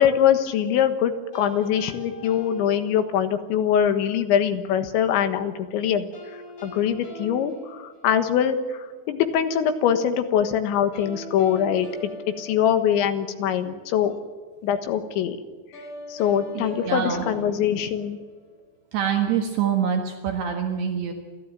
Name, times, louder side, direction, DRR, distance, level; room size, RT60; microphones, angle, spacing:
voice 1, 0.0-6.1 6.6-12.1 12.4-14.2 14.6-15.4 16.1-18.2, left 9 dB, 75° left, 8 dB, 3.7 m, -23 dB
sound 1, 1.3-3.5 6.1-8.6 10.9-13.4 15.7-18.5, equal, 45° left, 8.3 m, -41 dB
voice 2, 16.5-17.3 18.9-21.1, right 8 dB, 65° right, 3 dB, 3.3 m, -25 dB
29.5 x 13.5 x 9.0 m, 1.5 s
omnidirectional pair, 5.4 m